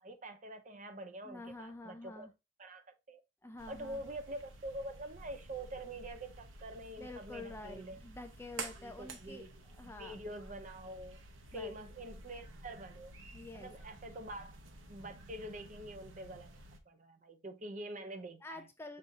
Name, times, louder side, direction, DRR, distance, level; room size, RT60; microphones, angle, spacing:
voice 1, 0.0-2.3 2.6-3.2 3.7-8.0 8.8-9.5 10.0-11.2 11.5-13.1 13.5-14.6 14.9-16.5 16.9-18.7, right 1 dB, 40° right, 0.6 m, -46 dB
voice 2, 1.2-2.3 3.4-4.0 7.0-9.5 9.8-10.2 11.5-11.8 13.3-13.7 18.4-19.0, left 2 dB, 10° left, 0.4 m, -48 dB
sound 1, 3.6-16.8, right 3 dB, 85° right, 0.9 m, -51 dB
5.5 x 2.7 x 3.5 m
head